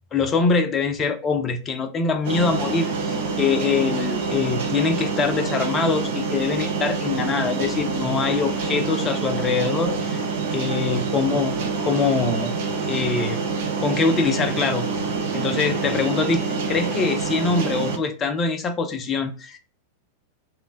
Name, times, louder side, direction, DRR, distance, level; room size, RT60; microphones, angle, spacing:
voice 1, 0.1-10.2 10.5-11.6 11.8-12.5 12.8-13.4 13.8-14.9 15.3-19.6, left 4 dB, 25° left, 0.5 m, -24 dB
sound 1, 2.2-18.0, right 4 dB, 55° right, 0.5 m, -26 dB
3.1 x 2.1 x 2.3 m
figure-of-eight pair, 90°, 0 cm